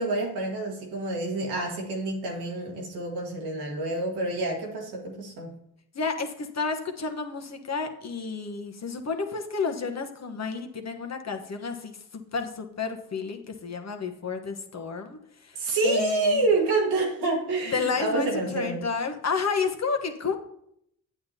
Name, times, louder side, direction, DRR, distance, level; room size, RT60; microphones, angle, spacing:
voice 1, 0.0-5.5 15.6-18.8, right 2 dB, 90° right, 0 dB, 1.7 m, -27 dB
voice 2, 5.9-16.4 17.7-20.4, left 5 dB, 45° left, 5 dB, 1.2 m, -31 dB
8.5 x 8.1 x 2.8 m, 0.73 s
supercardioid pair, 50°, 38 cm